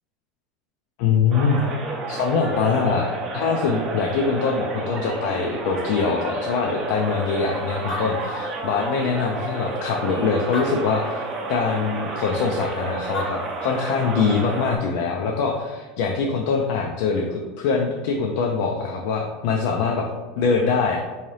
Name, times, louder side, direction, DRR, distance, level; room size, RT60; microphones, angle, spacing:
voice 1, 1.0-1.6 2.1-11.2 11.5-20.0 20.4-21.0, left 5 dB, 70° left, 1 dB, 0.4 m, -23 dB
sound 1, 1.3-14.8, right 3 dB, 35° right, 0.6 m, -31 dB
Animal, 7.4-7.5 7.7-9.1 9.8-9.9 10.4-11.4 12.9-13.0 13.1-14.1, left 2 dB, 45° left, 0.8 m, -34 dB
3.6 x 2.8 x 3.2 m, 1.3 s
supercardioid pair, 115°, 0 cm